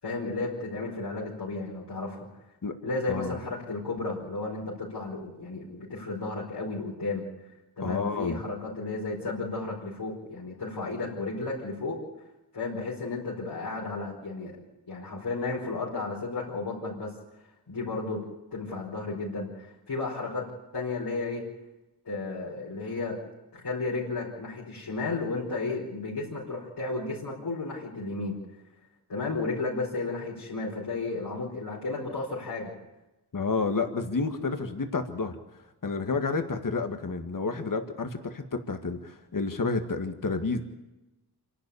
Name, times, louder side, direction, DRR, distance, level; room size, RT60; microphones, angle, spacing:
voice 1, 0.0-2.3 2.8-7.2 7.8-12.0 12.5-14.5 14.9-17.1 17.7-18.2 18.5-20.5 20.7-21.4 22.0-23.2 23.5-28.4 29.1-32.7, left 3 dB, 75° left, -6 dB, 4.8 m, -33 dB
voice 2, 7.8-8.4 33.3-35.4 35.8-40.6, left 4 dB, 55° left, 7 dB, 1.9 m, -30 dB
27.5 x 12.0 x 8.5 m, 1.0 s
wide cardioid pair, 85°, 39 cm